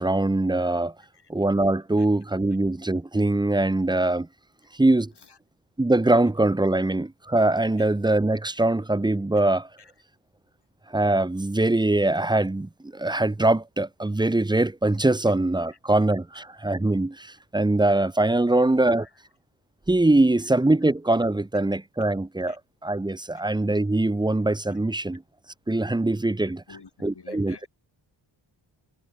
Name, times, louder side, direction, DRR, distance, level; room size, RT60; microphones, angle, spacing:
voice 1, 0.0-0.9 1.3-4.3 4.7-5.1 5.8-9.7 10.9-19.1 19.9-22.6 22.8-25.2 25.7-26.6 27.0-27.7, right 2 dB, 10° right, 0.6 m, -22 dB
voice 2, 26.4-27.7, left 5 dB, 55° left, 5.6 m, -51 dB
cardioid pair, 50°, 49 cm